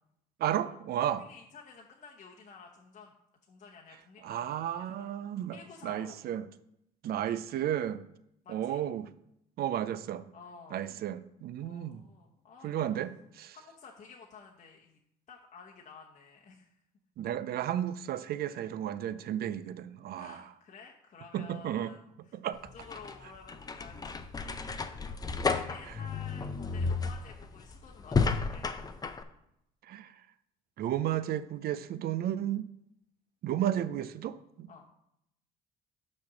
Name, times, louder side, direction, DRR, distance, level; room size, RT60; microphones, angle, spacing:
voice 1, 0.4-1.2 4.2-5.6 5.8-6.4 7.0-8.0 8.5-9.1 9.6-10.2 10.7-12.0 12.6-13.1 13.4-13.6 17.2-20.4 21.3-21.9 22.4-22.6 29.9-30.1 30.8-32.7 33.4-34.7, right 11 dB, 55° right, 15 dB, 0.5 m, -33 dB
voice 2, 1.2-3.1 3.5-4.6 4.9-5.1 5.5-6.2 8.4-8.8 10.3-10.9 11.6-12.9 13.5-15.0 15.3-16.8 20.1-22.0 22.2-22.4 22.7-24.9 25.1-28.7 34.7-34.9, left 5 dB, 40° left, -1 dB, 0.9 m, -52 dB
sound 1, 22.5-29.2, left 4 dB, 20° left, 0.6 m, -33 dB
6.1 x 4.3 x 6.1 m, 0.79 s
supercardioid pair, 90°, 19 cm